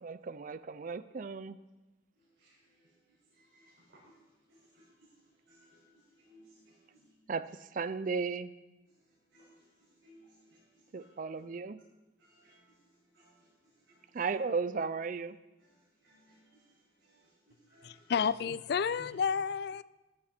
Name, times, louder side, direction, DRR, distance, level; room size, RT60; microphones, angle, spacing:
voice 1, 0.0-1.6 7.3-8.5 10.9-11.8 14.1-15.4, right 4 dB, 40° right, 14 dB, 0.4 m, -35 dB
voice 2, 3.3-4.1 4.7-4.8 5.5-5.8 6.2-7.0 9.3-9.6 10.0-10.6 12.2-12.6 13.1-13.3 16.0-16.7 17.0-17.2 17.7-18.0 19.0-19.1, equal, 70° right, -9 dB, 5.1 m, -61 dB
voice 3, 17.8-19.8, left 6 dB, 55° left, 17 dB, 0.3 m, -31 dB
14.5 x 11.0 x 4.4 m, 1.1 s
head